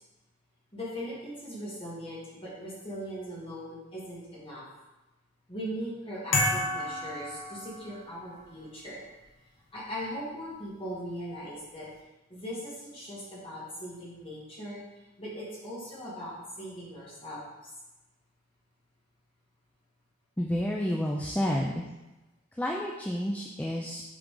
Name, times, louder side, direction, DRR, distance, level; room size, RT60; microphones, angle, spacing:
voice 1, 0.7-4.6 5.5-9.0 9.7-11.9 12.3-14.8 15.2-17.4, equal, 30° left, -7 dB, 2.1 m, -39 dB
sound 1, 6.3-8.2, left 2 dB, 70° left, 1.1 m, -30 dB
voice 2, 20.4-21.8 22.6-24.0, equal, 5° left, -2 dB, 0.4 m, -30 dB
7.7 x 3.9 x 3.8 m, 1.0 s
head